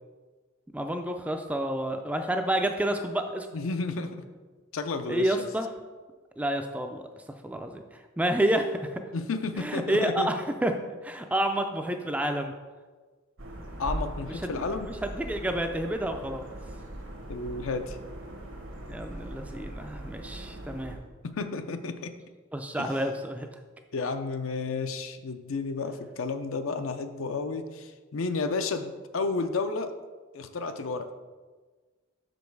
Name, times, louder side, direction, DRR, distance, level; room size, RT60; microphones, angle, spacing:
voice 1, 0.7-3.5 5.1-5.7 6.4-7.0 7.4-7.8 8.2-8.9 9.6-10.7 11.0-12.5 14.4-14.5 15.0-16.5 18.9-21.0 22.5-23.5, right 1 dB, 5° right, 5 dB, 0.3 m, -29 dB
voice 2, 3.5-4.2 4.7-5.5 9.1-10.3 13.8-14.9 17.3-18.0 21.2-22.1 22.8-22.9 23.9-29.9 30.3-31.1, left 3 dB, 75° left, 9 dB, 0.5 m, -32 dB
sound 1, 13.4-21.0, right 1 dB, 70° right, 1.1 m, -40 dB
6.3 x 5.2 x 4.6 m, 1.4 s
head